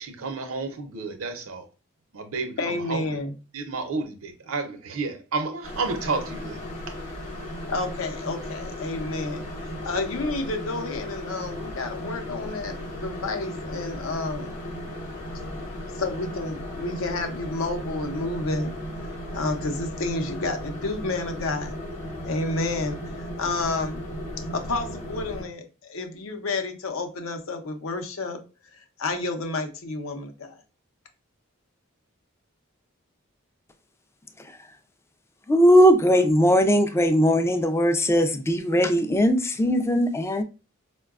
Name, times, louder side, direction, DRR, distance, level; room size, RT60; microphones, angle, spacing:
voice 1, 0.0-1.7 2.1-3.2 3.5-6.6, right 4 dB, 75° right, 0.6 m, -31 dB
voice 2, 2.6-3.3 7.7-9.4 9.8-14.6 16.0-18.7 19.3-21.7 22.2-24.0 24.5-28.4 28.7-30.6, left 2 dB, 70° left, 0.6 m, -30 dB
sound 1, 5.6-25.4, equal, 40° left, 0.9 m, -36 dB
voice 3, 35.5-40.4, equal, 15° left, 0.3 m, -19 dB
4.5 x 2.2 x 2.4 m
head